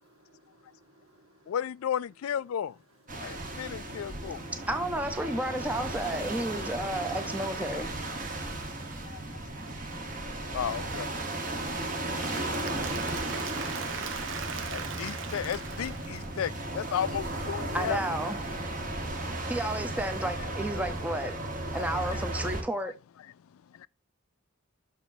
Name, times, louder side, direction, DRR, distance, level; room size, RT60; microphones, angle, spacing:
voice 1, 0.2-1.5 8.3-10.6, right 2 dB, 80° right, 2.0 m, -63 dB
voice 2, 1.5-2.8 3.2-4.4 9.0-9.2 10.5-11.1 14.7-18.0 22.1-22.2 23.7-23.9, left 9 dB, 80° left, 0.3 m, -33 dB
sound 1, 3.1-22.6, right 2 dB, 40° right, 1.6 m, -35 dB
voice 3, 4.7-7.9 17.7-18.4 19.5-21.4 21.7-22.9, right 1 dB, 5° right, 0.7 m, -32 dB
Applause / Crowd, 11.9-16.9, right 6 dB, 60° right, 0.8 m, -40 dB
6.3 x 5.2 x 4.2 m
head